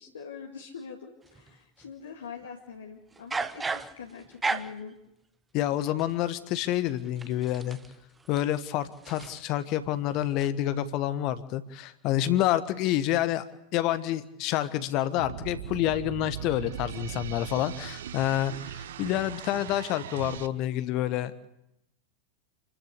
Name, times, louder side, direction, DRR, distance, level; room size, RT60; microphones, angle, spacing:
voice 1, 0.0-5.0, left 6 dB, 70° left, 0 dB, 2.1 m, -43 dB
sound 1, 1.3-1.9 3.1-4.9 6.0-9.8 10.1-10.5, right 4 dB, 10° right, 0.9 m, -36 dB
voice 2, 5.5-7.8 8.3-13.5 13.7-21.4, left 13 dB, 40° left, 13 dB, 1.2 m, -28 dB
sound 2, 15.2-20.5, right 10 dB, 60° right, 0.9 m, -39 dB
27.5 x 14.0 x 8.3 m, 0.86 s
figure-of-eight pair, 90°, 0 cm